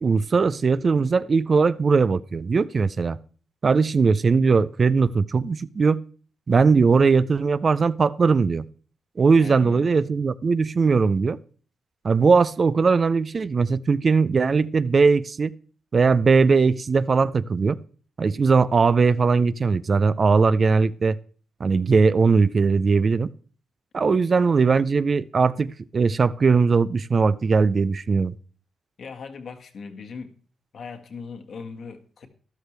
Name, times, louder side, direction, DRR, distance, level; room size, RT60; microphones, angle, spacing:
voice 1, 0.0-3.2 3.6-6.0 6.5-8.7 9.2-11.4 12.0-15.5 15.9-17.8 18.2-21.2 21.6-23.3 23.9-28.3, right 4 dB, 45° right, 16 dB, 0.5 m, -20 dB
voice 2, 9.4-9.9 24.1-24.2 29.0-30.3 30.7-32.3, left 5 dB, 65° left, 5 dB, 1.7 m, -39 dB
13.0 x 11.5 x 3.3 m, 0.41 s
cardioid pair, 75°, 0 cm